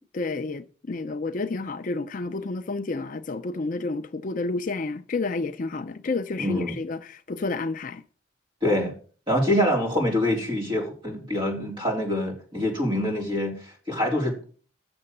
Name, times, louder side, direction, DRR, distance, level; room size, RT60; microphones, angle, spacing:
voice 1, 0.1-8.0, left 3 dB, 40° left, 0.5 m, -30 dB
voice 2, 6.4-6.8 8.6-8.9 9.3-14.5, left 1 dB, 25° right, 3.9 m, -25 dB
8.6 x 6.8 x 6.6 m
head